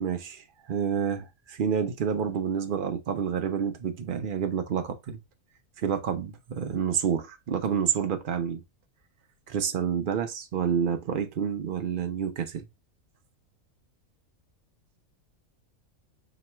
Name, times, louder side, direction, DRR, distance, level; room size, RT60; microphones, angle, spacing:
voice 1, 0.0-5.2 5.8-8.6 9.5-12.6, right 7 dB, 60° right, 0.5 m, -29 dB
3.0 x 2.9 x 4.2 m
omnidirectional pair, 1.5 m